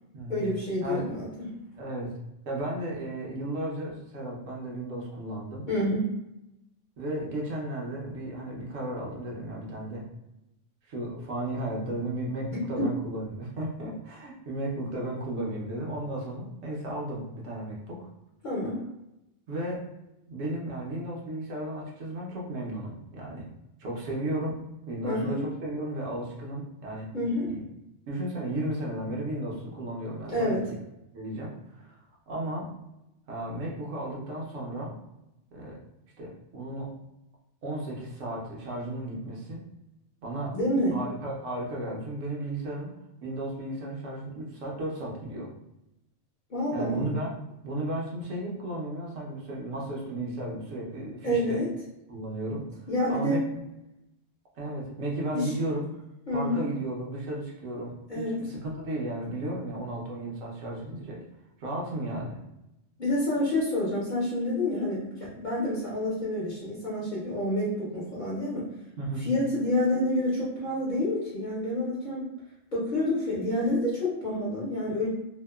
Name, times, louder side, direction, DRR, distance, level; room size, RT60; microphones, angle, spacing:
voice 1, 0.3-1.5 5.7-6.1 12.5-12.9 18.4-18.8 25.0-25.4 27.1-27.5 30.2-30.7 40.5-41.0 46.5-47.1 51.2-51.7 52.9-53.4 55.3-55.5 56.3-56.7 58.1-58.5 63.0-68.7 69.2-72.3 72.7-75.1, left 1 dB, 50° left, -7 dB, 0.7 m, -28 dB
voice 2, 1.8-2.1 2.5-5.7 7.0-10.1 10.9-18.0 19.5-19.8 20.3-23.5 23.8-24.6 24.9-27.1 27.4-27.6 28.1-30.6 31.1-32.0 32.3-32.7 33.3-35.0 35.5-35.8 36.2-36.9 37.6-39.6 40.2-40.6 40.9-42.9 43.2-45.5 46.7-47.3 47.6-51.6 52.1-52.7 53.1-53.4 54.6-55.8 56.3-61.2 61.6-62.4 69.0-69.2, right 1 dB, 80° right, -3 dB, 1.1 m, -34 dB
2.8 x 2.1 x 2.2 m, 0.88 s
omnidirectional pair, 1.3 m